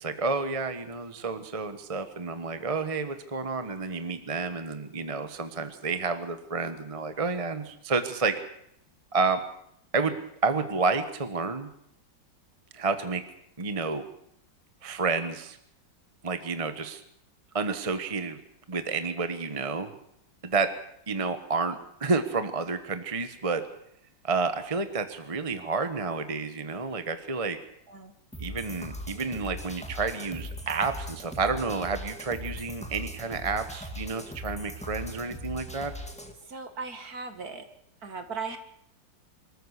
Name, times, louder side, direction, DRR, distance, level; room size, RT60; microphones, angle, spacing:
voice 1, 0.0-8.4 9.1-9.4 9.9-10.2 10.4-11.7 12.7-13.2 13.6-14.0 14.8-15.6 16.2-17.0 17.5-18.4 18.7-19.9 20.4-20.7 21.1-23.7 24.2-27.6 28.4-35.9, right 4 dB, 20° right, 10 dB, 1.1 m, -30 dB
sound 1, 28.3-36.3, equal, 5° left, 2.0 m, -39 dB
voice 2, 36.5-37.6 38.0-38.6, right 4 dB, 50° right, 8 dB, 2.2 m, -37 dB
24.5 x 13.5 x 8.2 m, 0.74 s
omnidirectional pair, 2.1 m